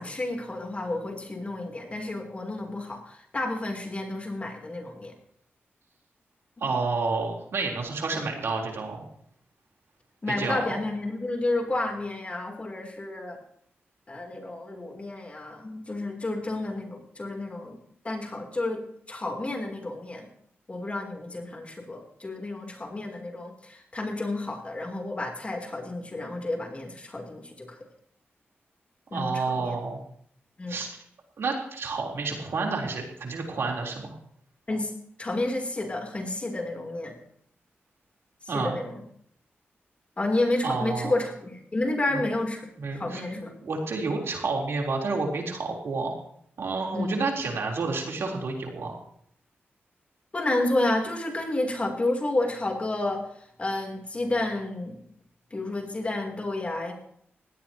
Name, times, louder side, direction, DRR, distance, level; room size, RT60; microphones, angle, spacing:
voice 1, 0.0-5.1 6.6-6.7 10.2-13.4 14.1-17.8 18.0-20.3 20.7-27.8 29.1-29.8 30.6-30.8 34.7-34.9 35.2-37.1 38.5-39.0 40.2-42.6 42.9-43.5 46.9-47.3 50.3-53.2 53.6-55.0 55.5-56.9, left 2 dB, 30° left, 2 dB, 3.4 m, -30 dB
voice 2, 6.6-9.0 10.3-10.6 29.1-30.0 30.7-30.9 31.4-34.2 38.5-38.8 40.6-41.1 42.1-42.2 42.8-43.2 43.6-46.1 46.6-49.0, right 4 dB, 75° right, 0 dB, 3.8 m, -29 dB
20.0 x 16.5 x 3.0 m, 0.67 s
wide cardioid pair, 105°, 4 cm